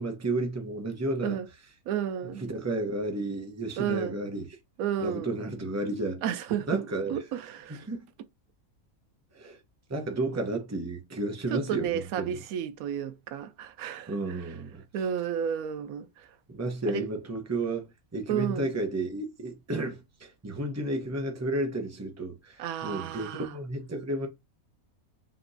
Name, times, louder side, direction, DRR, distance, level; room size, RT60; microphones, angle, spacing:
voice 1, 0.0-1.4 2.4-4.5 5.0-6.2 6.7-7.1 7.7-8.0 9.3-9.6 9.9-12.4 14.1-14.8 16.5-24.3, right 2 dB, 15° right, 0.8 m, -32 dB
voice 2, 1.9-2.4 3.8-4.2 4.8-5.3 6.2-6.8 7.1-7.9 11.5-14.4 14.9-16.3 16.9-17.1 18.3-18.7 22.6-23.5, right 9 dB, 85° right, 1.0 m, -32 dB
5.8 x 3.0 x 2.6 m
omnidirectional pair, 1.5 m